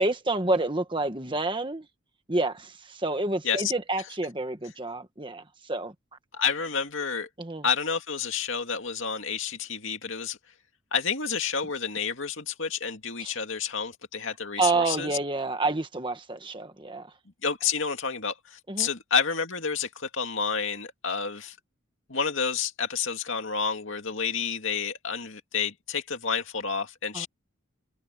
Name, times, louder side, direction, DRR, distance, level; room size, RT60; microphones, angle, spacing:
voice 1, 0.0-1.9 2.3-5.4 5.7-5.9 7.4-7.6 13.2-13.3 14.6-17.1 18.7-18.9 27.1-27.3, right 2 dB, 20° right, 1.5 m, -28 dB
voice 2, 6.3-7.3 7.6-10.4 10.9-15.2 17.4-21.6 22.1-27.3, left 6 dB, 60° left, 2.5 m, -29 dB
head